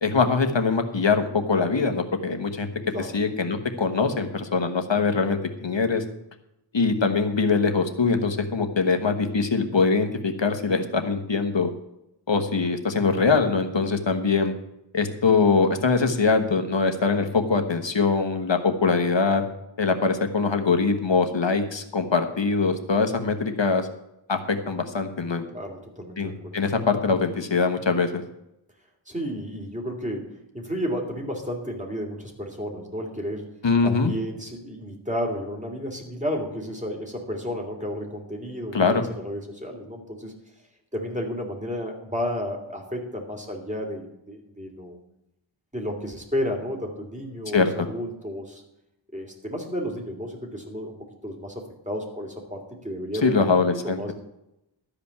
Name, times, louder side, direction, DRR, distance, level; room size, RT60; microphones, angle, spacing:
voice 1, 0.0-2.7 3.1-6.0 6.7-11.7 12.3-14.5 14.9-19.4 19.8-23.9 24.3-25.4 26.2-28.2 33.6-34.1 38.7-39.1 47.5-47.9 53.2-54.0, left 4 dB, 65° left, 6 dB, 1.3 m, -23 dB
voice 2, 25.5-26.6 29.1-33.5 33.8-40.3 40.9-45.0 45.7-48.6 49.1-50.9 51.2-53.4 53.8-54.1, equal, 15° right, 1 dB, 2.9 m, -32 dB
13.0 x 5.1 x 8.6 m, 0.84 s
wide cardioid pair, 45°, 46 cm